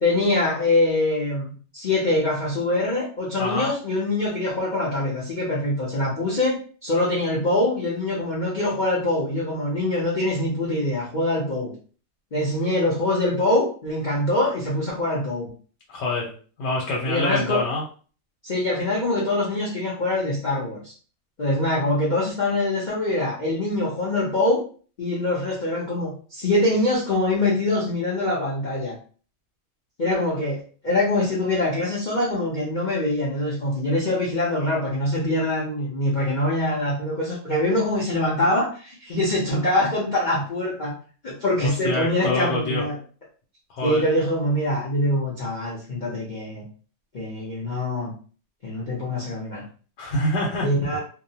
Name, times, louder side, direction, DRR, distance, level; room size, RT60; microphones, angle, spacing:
voice 1, 0.0-11.7 12.3-15.5 17.0-17.6 18.4-20.9 21.4-24.6 25.0-29.0 30.0-40.9 41.2-43.0 43.8-46.6 47.1-48.1 48.6-49.6 50.6-51.0, left 1 dB, 55° left, -5 dB, 0.5 m, -24 dB
voice 2, 3.4-3.7 15.9-16.3 16.6-17.8 41.6-42.8 43.7-44.1 50.0-50.7, left 2 dB, 90° left, -2 dB, 1.3 m, -25 dB
2.8 x 2.0 x 2.7 m, 0.40 s
omnidirectional pair, 1.8 m